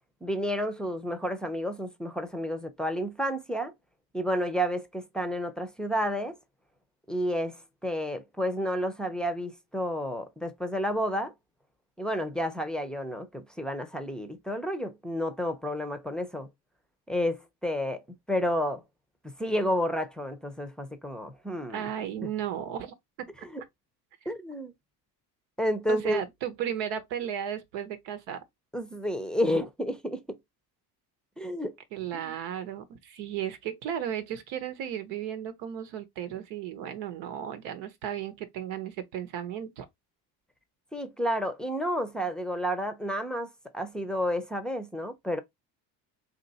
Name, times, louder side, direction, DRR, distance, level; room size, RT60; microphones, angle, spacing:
voice 1, 0.2-3.7 4.1-6.4 7.1-7.6 7.8-11.3 12.0-16.5 17.1-18.8 19.2-21.9 23.4-23.6 24.3-24.7 25.6-26.2 28.7-30.2 31.4-31.7 32.1-32.3 40.9-45.4, equal, ahead, 0.6 m, -31 dB
voice 2, 21.7-22.9 23.4-23.5 25.9-28.4 31.9-39.9, right 9 dB, 80° right, 1.0 m, -34 dB
2.9 x 2.6 x 4.1 m
supercardioid pair, 95°, 44 cm